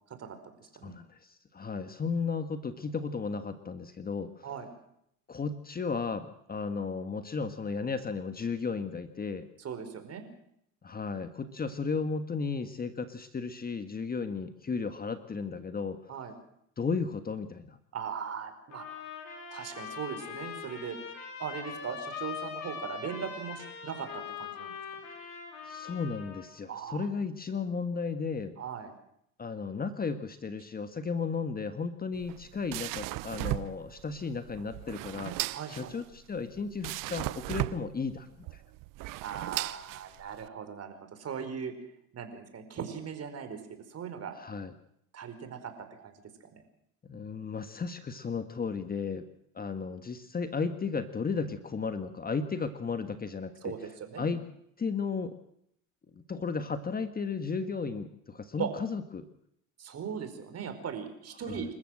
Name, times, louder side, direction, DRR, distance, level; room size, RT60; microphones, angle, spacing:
voice 1, 0.8-4.5 5.3-9.5 10.8-16.0 16.8-17.8 25.6-28.5 29.4-35.4 35.7-38.6 44.4-44.7 47.0-49.2 49.5-53.7 54.2-54.4 54.8-55.3 56.1-59.2 61.5-61.6, left 5 dB, 20° left, 9 dB, 1.5 m, -34 dB
voice 2, 9.6-10.3 16.1-16.3 17.9-18.8 19.5-21.0 21.4-24.7 26.7-27.1 28.6-28.9 35.5-35.9 39.2-41.8 42.1-43.6 43.9-44.3 45.1-46.1 46.4-46.6 53.6-54.3 58.6-58.7 59.8-61.7, right 7 dB, 40° right, 8 dB, 4.7 m, -39 dB
sound 1, 18.7-26.5, left 7 dB, 55° left, 7.1 m, -42 dB
sound 2, 32.1-40.5, right 18 dB, 55° right, 0.8 m, -37 dB
27.5 x 14.5 x 7.7 m, 0.74 s
hypercardioid pair, 85°, 39 cm